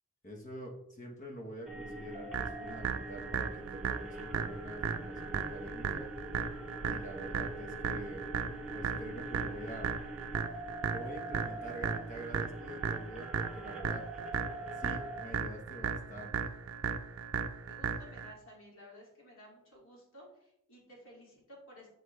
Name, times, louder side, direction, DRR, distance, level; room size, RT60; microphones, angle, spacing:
voice 1, 0.2-6.1 6.8-8.3 8.7-9.9 10.9-14.0 14.8-16.3, right 1 dB, 35° left, 1 dB, 1.3 m, -46 dB
sound 1, 1.7-15.2, right 1 dB, ahead, 0.8 m, -44 dB
sound 2, 2.3-18.3, right 6 dB, 75° right, 0.5 m, -36 dB
voice 2, 17.6-21.9, left 1 dB, 70° left, -3 dB, 2.6 m, -55 dB
8.3 x 4.4 x 3.3 m, 0.79 s
head